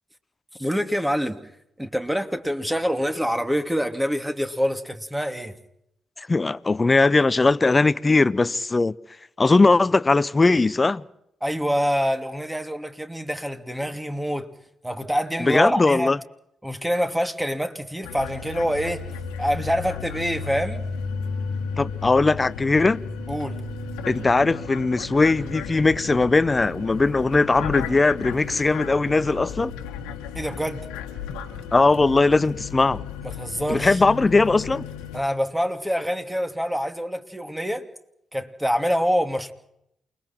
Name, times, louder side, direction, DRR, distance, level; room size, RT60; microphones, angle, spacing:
voice 1, 0.6-1.4 1.8-5.5 11.4-14.5 14.8-16.1 16.6-19.1 19.4-20.8 23.3-23.6 30.3-30.9 33.3-34.0 35.1-37.9 38.3-39.5, equal, 10° right, 2.8 m, -26 dB
voice 2, 6.2-8.9 9.4-11.0 15.4-16.2 21.8-23.0 24.1-29.7 31.7-33.0 33.7-34.9, left 3 dB, 30° left, 0.8 m, -19 dB
sound 1, 18.0-35.2, left 6 dB, 85° left, 1.7 m, -34 dB
29.0 x 21.5 x 4.5 m
hypercardioid pair, 40°, 0 cm